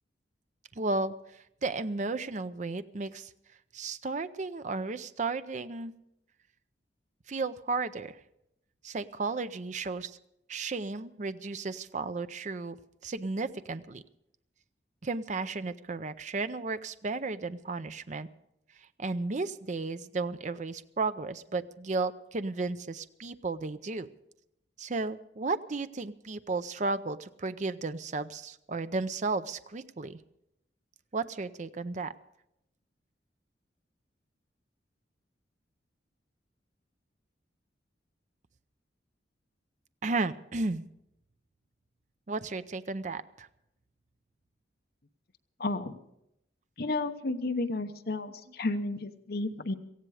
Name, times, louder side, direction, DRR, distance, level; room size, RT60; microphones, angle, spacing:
voice 1, 0.8-3.3 3.7-5.9 7.3-8.2 8.8-10.2 10.5-12.8 13.0-14.0 15.0-18.3 19.0-24.1 24.8-30.2 31.1-32.1 40.0-40.8 42.3-43.5, right 3 dB, 40° right, 12 dB, 0.6 m, -34 dB
voice 2, 45.6-46.0 46.8-49.7, left 2 dB, 55° left, 8 dB, 1.0 m, -32 dB
18.0 x 15.0 x 4.9 m, 0.81 s
head